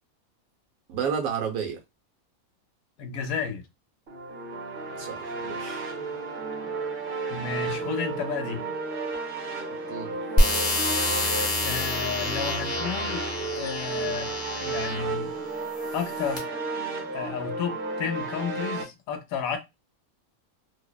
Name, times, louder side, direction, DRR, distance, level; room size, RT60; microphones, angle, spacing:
voice 1, 0.9-1.8 5.0-5.8 9.7-10.2, right 7 dB, 80° right, 1.2 m, -31 dB
voice 2, 3.0-3.6 7.3-8.6 11.2-13.2 13.6-14.3 14.6-15.3 15.9-16.5 17.1-19.6, left 7 dB, 75° left, 1.0 m, -32 dB
sound 1, 4.1-18.8, right 3 dB, 50° right, 0.7 m, -33 dB
sound 2, 10.4-15.1 15.8-16.4, left 1 dB, 35° left, 0.7 m, -27 dB
2.8 x 2.0 x 2.2 m
omnidirectional pair, 1.5 m